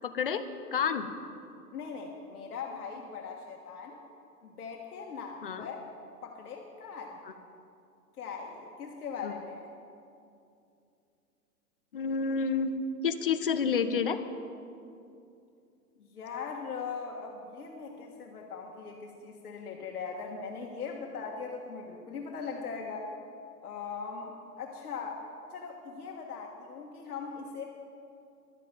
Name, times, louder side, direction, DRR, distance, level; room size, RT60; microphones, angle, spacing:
voice 1, 0.0-0.5 0.7-1.1 5.4-5.7 9.2-9.3 11.9-12.7 13.0-14.2, left 6 dB, 35° left, 10 dB, 0.5 m, -29 dB
voice 2, 1.7-4.0 4.4-5.8 6.2-7.2 8.2-9.7 16.0-23.1 23.6-25.2 25.5-27.6, left 5 dB, 70° left, 0 dB, 1.6 m, -40 dB
12.0 x 7.5 x 9.1 m, 2.6 s
hypercardioid pair, 160°, 48 cm